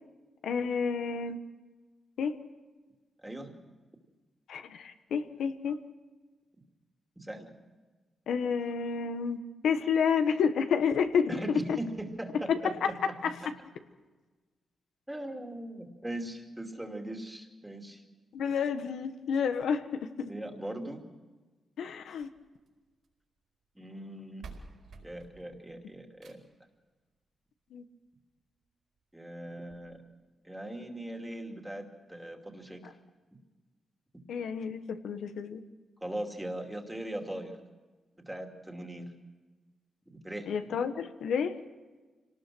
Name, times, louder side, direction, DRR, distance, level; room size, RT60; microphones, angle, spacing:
voice 1, 0.4-1.4 2.2-2.4 4.5-5.8 8.3-11.6 12.5-12.9 13.2-13.3 18.3-20.3 21.8-22.3 27.7-27.8 34.3-35.6 40.5-41.5, left 6 dB, 85° left, 8 dB, 1.4 m, -30 dB
voice 2, 3.2-3.5 7.2-7.5 11.3-13.5 15.1-18.0 20.3-21.0 23.7-24.4 25.0-26.4 29.1-30.0 30.4-32.8 36.0-37.6 38.2-39.1 40.1-40.5, right 1 dB, 5° right, 3 dB, 2.7 m, -40 dB
sound 1, 22.0-23.2 24.1-24.2 24.4-26.7 28.0-28.1 28.6-28.7 29.0-29.1 29.7-29.8, right 4 dB, 60° right, 4.6 m, -51 dB
26.5 x 19.0 x 6.2 m, 1.3 s
wide cardioid pair, 140°, 0 cm